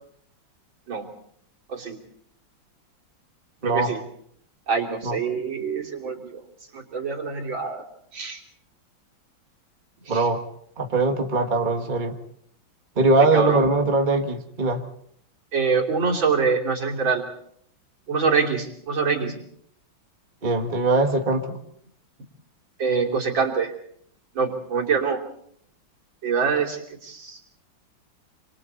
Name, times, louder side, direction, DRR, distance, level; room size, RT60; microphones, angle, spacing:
voice 1, 3.6-4.0 4.7-6.4 6.7-7.8 8.1-8.4 10.1-10.2 13.2-13.7 15.5-17.3 18.1-19.3 22.8-23.7 24.4-25.2 26.2-27.4, right 5 dB, 70° right, 0 dB, 3.8 m, -25 dB
voice 2, 10.1-10.4 10.8-12.2 13.0-14.8 20.4-21.6, right 2 dB, 25° right, 3 dB, 1.8 m, -21 dB
27.5 x 27.0 x 4.1 m, 0.68 s
omnidirectional pair, 2.2 m